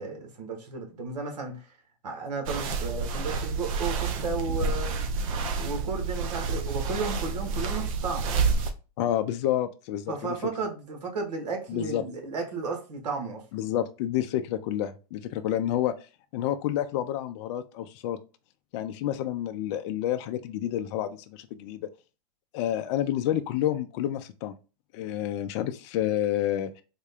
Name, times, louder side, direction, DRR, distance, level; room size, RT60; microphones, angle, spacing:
voice 1, 0.0-1.7 2.0-4.9 5.6-8.3 10.1-13.4, right 4 dB, 85° right, 1.2 m, -33 dB
sound 1, 2.5-8.7, right 4 dB, 55° right, 0.6 m, -29 dB
voice 2, 9.0-10.4 11.7-12.0 13.5-15.9 16.3-18.2 18.7-21.9 22.5-24.5 24.9-26.8, left 11 dB, 45° left, 0.4 m, -29 dB
3.7 x 2.2 x 3.4 m
hypercardioid pair, 130°, 20 cm